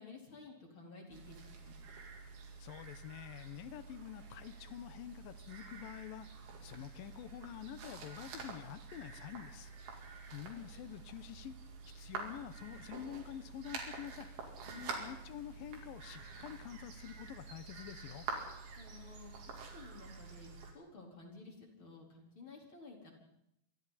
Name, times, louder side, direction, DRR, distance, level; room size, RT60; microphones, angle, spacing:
voice 1, 0.0-1.8 10.1-10.2 14.6-15.0 18.8-23.1, left 3 dB, 30° left, 0 dB, 4.5 m, -53 dB
sound 1, 1.1-20.7, right 4 dB, 80° right, 5.6 m, -48 dB
voice 2, 2.6-6.3 6.6-9.7 10.3-11.6 11.9-14.3 15.0-18.3, left 11 dB, 75° left, 12 dB, 2.1 m, -47 dB
28.5 x 23.5 x 4.2 m, 0.78 s
omnidirectional pair, 5.1 m